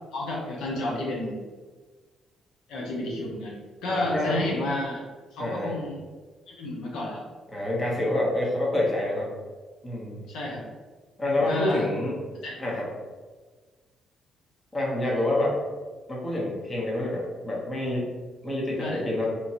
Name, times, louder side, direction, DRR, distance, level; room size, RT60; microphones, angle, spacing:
voice 1, 0.1-1.4 2.7-3.6 3.8-5.1 5.3-6.0 6.5-7.2 10.3-10.7 11.4-11.8 12.4-12.6 18.8-19.0, left 1 dB, 85° left, -3 dB, 0.7 m, -31 dB
voice 2, 3.9-4.4 5.4-5.8 7.5-9.3 9.8-10.3 11.2-12.2 12.6-12.9 14.7-15.6 16.1-18.1 18.4-19.3, left 1 dB, 25° left, -4 dB, 1.0 m, -27 dB
3.0 x 2.5 x 2.9 m, 1.4 s
cardioid pair, 90°, 0 cm